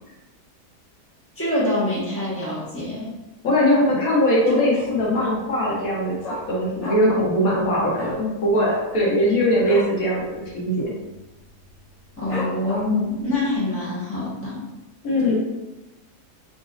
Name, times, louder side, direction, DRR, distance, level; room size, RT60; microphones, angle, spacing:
voice 1, 1.4-3.1 12.2-14.6, left 2 dB, 10° left, -8 dB, 0.8 m, -25 dB
voice 2, 3.4-6.2 6.5-10.2 10.5-10.9 15.0-15.4, equal, 60° left, -3 dB, 1.3 m, -20 dB
Dog, 4.7-5.2 5.5-5.6 5.8-7.3 7.5-7.7 7.9-8.2 8.6-10.0 10.3-10.5 10.8-11.2 11.6-11.7 12.3-13.1 13.6-13.7, left 2 dB, 40° left, 1.6 m, -32 dB
4.0 x 2.6 x 2.4 m, 1.0 s
omnidirectional pair, 1.8 m